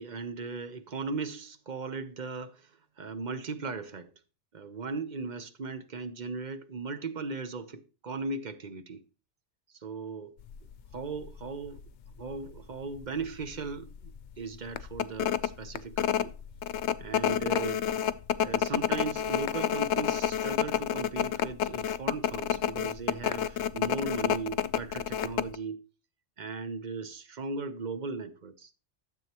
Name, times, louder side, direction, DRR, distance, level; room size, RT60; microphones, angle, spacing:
voice 1, 0.0-4.1 4.5-9.0 9.7-10.4 10.9-11.8 12.2-16.3 17.0-17.8 18.4-25.8 26.4-28.7, right 4 dB, 45° right, 1.0 m, -37 dB
sound 1, 10.5-10.7 11.2-11.3 11.7-12.6 13.0-13.1 13.4-13.7 14.1-14.2 14.8-25.5, left 9 dB, 75° left, 0.9 m, -29 dB
12.5 x 7.5 x 2.9 m
omnidirectional pair, 1.2 m